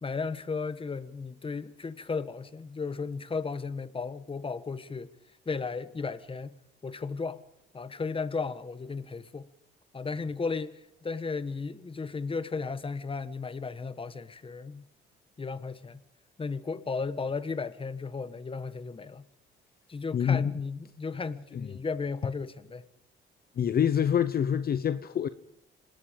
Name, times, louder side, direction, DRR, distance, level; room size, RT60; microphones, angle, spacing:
voice 1, 0.0-5.1 5.5-6.5 6.8-7.4 7.7-9.5 9.9-14.8 15.4-16.0 16.4-19.3 19.9-22.8, left 4 dB, 25° left, 1.4 m, -35 dB
voice 2, 20.1-20.5 21.5-21.7 23.6-25.3, left 8 dB, 50° left, 0.9 m, -26 dB
26.0 x 19.5 x 5.2 m
cardioid pair, 90°, 20 cm